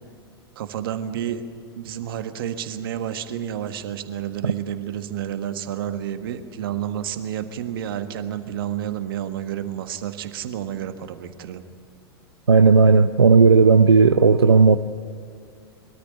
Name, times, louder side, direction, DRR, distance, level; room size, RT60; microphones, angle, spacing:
voice 1, 0.5-1.4 1.8-11.6, right 10 dB, 65° right, 9 dB, 1.6 m, -30 dB
voice 2, 12.5-14.8, right 4 dB, 90° right, 9 dB, 0.6 m, -14 dB
22.0 x 13.5 x 10.0 m, 2.4 s
figure-of-eight pair, 95°, 13 cm